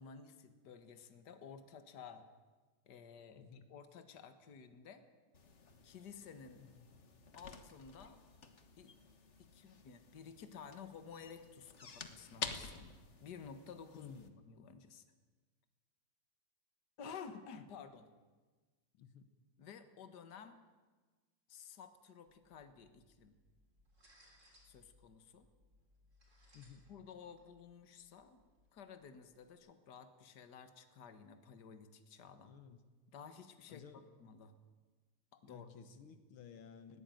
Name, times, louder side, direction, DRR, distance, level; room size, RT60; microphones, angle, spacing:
voice 1, 0.0-2.3 2.9-5.1 5.8-6.6 7.3-8.2 8.8-8.9 9.4-15.0 17.0-18.1 19.6-20.6 21.5-23.3 24.6-25.5 26.9-28.4 28.7-32.5 33.1-33.8 34.2-34.5 35.3-35.7, left 6 dB, 55° left, 9 dB, 2.0 m, -53 dB
voice 2, 3.4-3.7 6.6-6.9 13.9-14.4 18.9-19.3 26.5-26.9 32.4-32.8 33.7-34.1 35.5-37.0, left 7 dB, 80° left, 10 dB, 2.1 m, -56 dB
sound 1, 5.3-14.3, left 5 dB, 40° left, 1.5 m, -50 dB
sound 2, 22.3-29.5, left 1 dB, 35° right, 4.0 m, -69 dB
20.0 x 17.5 x 9.1 m, 1.3 s
omnidirectional pair, 2.3 m